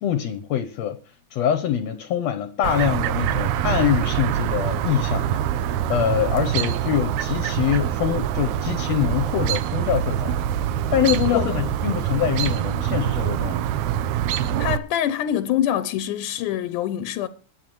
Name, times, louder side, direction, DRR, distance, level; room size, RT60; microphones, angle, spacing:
voice 1, 0.0-1.0 1.3-5.3 5.9-10.4 10.9-13.6, left 10 dB, 70° left, 1.9 m, -24 dB
Chirp tweet, 2.6-14.8, right 10 dB, 75° right, 2.0 m, -24 dB
voice 2, 14.4-17.3, left 11 dB, 85° left, 2.2 m, -25 dB
23.5 x 8.9 x 3.1 m
omnidirectional pair, 3.6 m